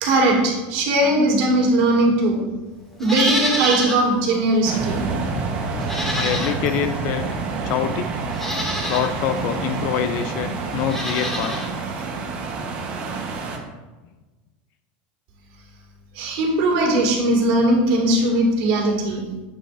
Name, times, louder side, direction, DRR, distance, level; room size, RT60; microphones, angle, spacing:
voice 1, 0.0-2.4 3.0-5.0 16.2-19.2, right 1 dB, 45° right, 0 dB, 1.9 m, -19 dB
Livestock farm animals working animals, 3.0-4.1 4.5-4.6 5.8-6.8 7.7-7.8 8.3-9.1 10.8-11.7 12.0-12.1, left 1 dB, 5° left, 0.9 m, -27 dB
sound 1, 4.6-13.6, right 4 dB, 30° right, 0.9 m, -28 dB
voice 2, 6.1-7.3 7.6-8.2 8.9-11.5 19.1-19.2, left 9 dB, 35° left, 10 dB, 0.4 m, -25 dB
8.6 x 8.3 x 2.5 m, 1.2 s
supercardioid pair, 175°, 5 cm